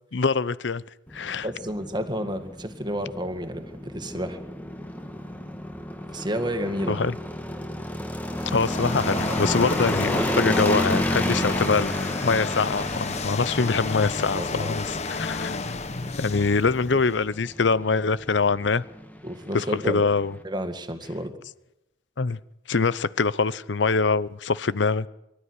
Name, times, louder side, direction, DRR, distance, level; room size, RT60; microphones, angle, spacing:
voice 1, 0.1-0.8 1.1-1.5 6.9-7.1 8.5-11.9 12.2-15.6 16.2-18.8 19.5-20.3 22.2-22.4 22.7-25.1, left 4 dB, 75° left, 0.7 m, -24 dB
sound 1, 1.1-20.4, equal, 10° left, 1.7 m, -31 dB
voice 2, 1.3-4.4 6.1-7.1 14.3-15.0 16.0-16.2 19.2-20.1 20.4-21.3, equal, 25° right, 2.0 m, -31 dB
sound 2, 8.2-17.3, left 3 dB, 40° left, 1.0 m, -32 dB
24.0 x 13.5 x 9.8 m
head